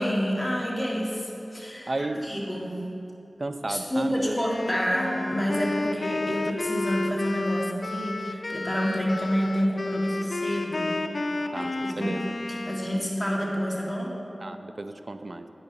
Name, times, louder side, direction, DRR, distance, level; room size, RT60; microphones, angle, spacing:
voice 1, 0.0-2.9 3.7-11.0 11.3-12.1 12.5-14.2, equal, 10° left, -3 dB, 1.9 m, -28 dB
voice 2, 1.9-2.3 3.4-4.4 5.8-5.9 11.5-12.3 12.9-13.0 14.4-15.5, right 2 dB, 55° right, 8 dB, 0.5 m, -33 dB
Wind instrument woodwind instrument, 4.3-13.1, left 2 dB, 70° left, 0.5 m, -31 dB
8.9 x 6.8 x 6.0 m, 2.7 s
wide cardioid pair, 55°, 0 cm